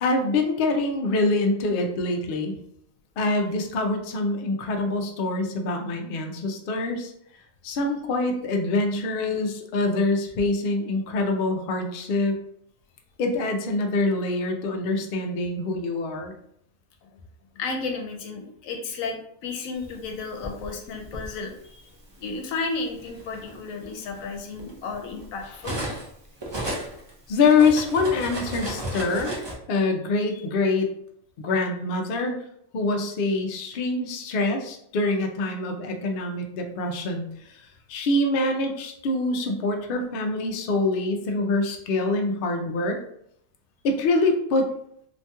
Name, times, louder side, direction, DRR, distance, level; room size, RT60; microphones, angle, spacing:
voice 1, 0.0-2.5 3.2-7.1 7.6-12.4 13.2-16.3 27.3-29.3 29.7-30.9 31.4-32.4 32.7-37.6 37.9-43.0 43.8-44.7, left 3 dB, 65° left, 3 dB, 0.5 m, -25 dB
voice 2, 17.5-21.8 22.2-25.8 30.3-30.4, left 4 dB, 85° left, 3 dB, 1.0 m, -33 dB
Cutlery silverware, 20.0-21.3 22.3-22.4 22.9-26.1 26.4-29.5, right 1 dB, 45° right, 0.3 m, -34 dB
2.9 x 2.2 x 2.8 m, 0.69 s
omnidirectional pair, 1.4 m